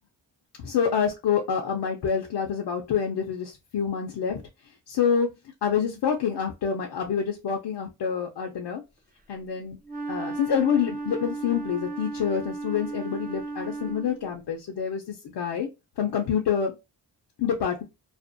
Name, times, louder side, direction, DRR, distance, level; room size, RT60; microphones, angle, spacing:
voice 1, 0.6-4.4 4.9-5.3 5.6-8.8 9.3-9.8 10.1-15.7 16.0-16.7 17.4-17.8, left 7 dB, 70° left, 1 dB, 0.6 m, -27 dB
Wind instrument woodwind instrument, 9.8-14.4, right 3 dB, 20° right, 0.5 m, -35 dB
2.5 x 2.1 x 2.5 m, 0.24 s
wide cardioid pair, 95°, 41 cm